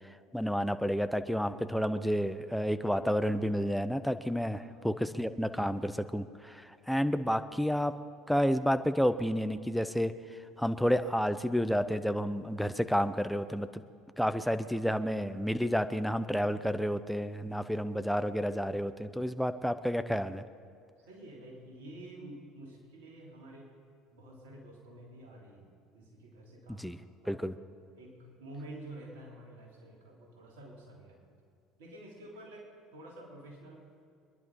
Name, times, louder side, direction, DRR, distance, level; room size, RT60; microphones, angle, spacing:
voice 1, 0.3-7.9 8.3-10.1 10.6-13.8 14.2-20.4 26.8-27.0 27.3-27.5, equal, ahead, 11 dB, 0.8 m, -30 dB
voice 2, 4.4-5.0 21.0-23.7 24.1-26.9 27.2-27.4 28.0-31.2 31.8-34.1, right 1 dB, 70° right, -1 dB, 3.2 m, -49 dB
24.5 x 11.0 x 5.4 m, 2.4 s
figure-of-eight pair, 65°, 0 cm